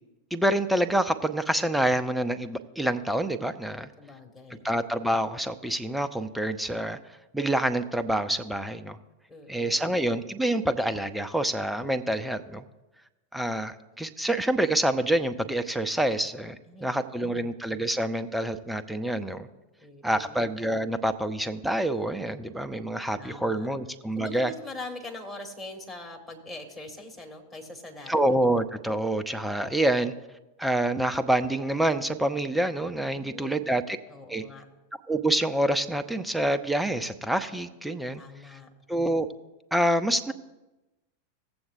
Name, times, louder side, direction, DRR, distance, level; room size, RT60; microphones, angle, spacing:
voice 1, 0.3-3.9 4.6-7.0 7.3-9.0 9.5-12.6 13.3-19.5 20.0-24.5 28.1-30.1 30.6-34.0 34.3-34.4 35.1-38.2 38.9-39.3 39.7-40.3, right 1 dB, 5° right, 9 dB, 0.5 m, -27 dB
voice 2, 4.0-4.7 9.3-10.0 16.6-17.5 19.8-20.5 23.1-23.7 24.1-28.4 33.1-33.8 34.1-34.6 38.2-38.7, left 2 dB, 15° left, 0 dB, 1.7 m, -43 dB
17.5 x 7.8 x 2.6 m, 1.1 s
figure-of-eight pair, 90°, 0 cm